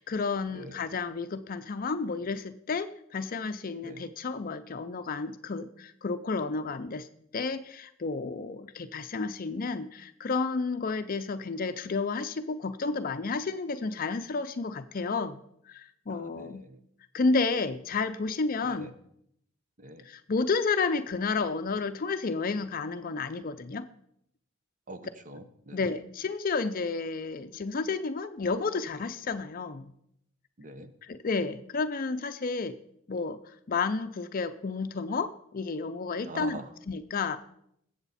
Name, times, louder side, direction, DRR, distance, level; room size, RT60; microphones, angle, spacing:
voice 1, 0.0-7.1 7.3-15.4 15.7-16.6 17.1-18.9 20.1-23.9 25.7-29.9 31.0-32.7 33.1-33.4 33.7-36.6 36.9-37.4, left 4 dB, 40° left, 10 dB, 0.5 m, -31 dB
voice 2, 16.1-16.8 18.6-18.9 19.8-20.0 24.9-25.8 30.6-30.9 36.2-36.7, right 2 dB, 40° right, 10 dB, 0.9 m, -44 dB
20.0 x 8.0 x 4.2 m, 0.74 s
head